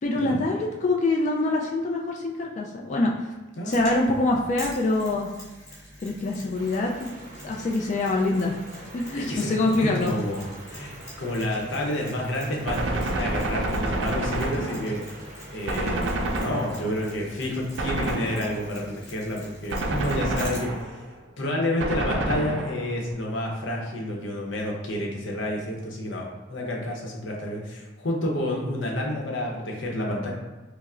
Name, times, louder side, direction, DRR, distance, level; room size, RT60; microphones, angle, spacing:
voice 1, 0.0-3.3 3.6-5.3 6.0-7.1 7.4-10.1, left 2 dB, 40° left, -1 dB, 0.3 m, -25 dB
Mechanisms, 3.7-20.8, equal, 20° left, 1.3 m, -46 dB
sound 1, 6.5-16.5, right 1 dB, 45° right, 0.6 m, -45 dB
voice 2, 9.2-15.2 15.5-21.0 21.4-30.3, left 1 dB, 90° left, -1 dB, 0.8 m, -30 dB
Gunshot gunfire, 12.7-15.2 15.7-17.1 17.8-18.8 19.7-21.1 21.8-23.0, right 2 dB, 90° right, 0.4 m, -28 dB
5.4 x 2.0 x 2.4 m, 1.2 s
head